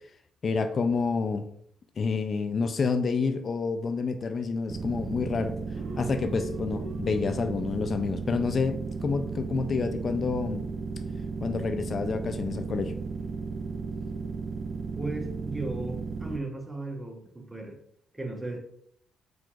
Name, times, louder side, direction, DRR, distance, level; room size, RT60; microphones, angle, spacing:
voice 1, 0.4-1.5 2.0-5.6 6.0-10.7 11.4-12.9, left 4 dB, 45° left, 8 dB, 0.4 m, -28 dB
sound 1, 4.7-16.4, right 5 dB, 35° right, 0.4 m, -35 dB
sound 2, 5.7-16.4, left 1 dB, 85° right, 0.9 m, -47 dB
voice 2, 14.9-17.8 18.1-18.6, right 2 dB, 15° right, 1 dB, 1.1 m, -36 dB
4.7 x 3.9 x 2.4 m, 0.66 s
cardioid pair, 90°, 0 cm